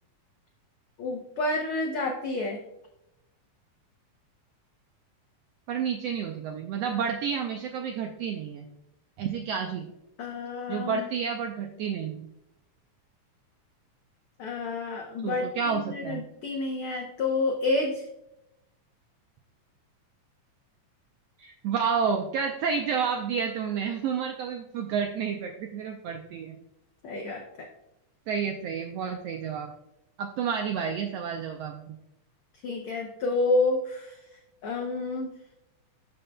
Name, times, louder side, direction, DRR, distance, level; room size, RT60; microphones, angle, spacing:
voice 1, 1.0-2.6 10.2-11.0 14.4-18.0 27.0-27.7 32.6-34.2 34.6-35.3, left 2 dB, 85° left, 2 dB, 1.2 m, -29 dB
voice 2, 5.7-8.7 9.2-9.9 10.7-12.3 15.2-16.2 21.4-26.6 28.3-29.7 30.2-32.0, right 6 dB, 85° right, 4 dB, 1.4 m, -30 dB
12.5 x 5.3 x 2.2 m, 0.83 s
omnidirectional pair, 3.5 m